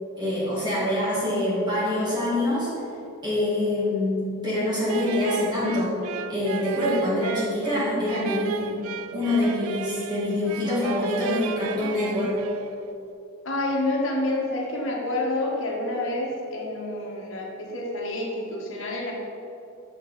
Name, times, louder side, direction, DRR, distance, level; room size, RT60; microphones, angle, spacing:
voice 1, 0.2-2.7 3.2-5.9 6.3-8.8 9.1-12.4, left 1 dB, 20° right, -8 dB, 1.6 m, -25 dB
sound 1, 4.9-12.9, right 8 dB, 85° right, 0.3 m, -35 dB
voice 2, 13.4-19.1, left 2 dB, 70° left, -2 dB, 1.2 m, -28 dB
6.8 x 5.3 x 3.9 m, 2.8 s
head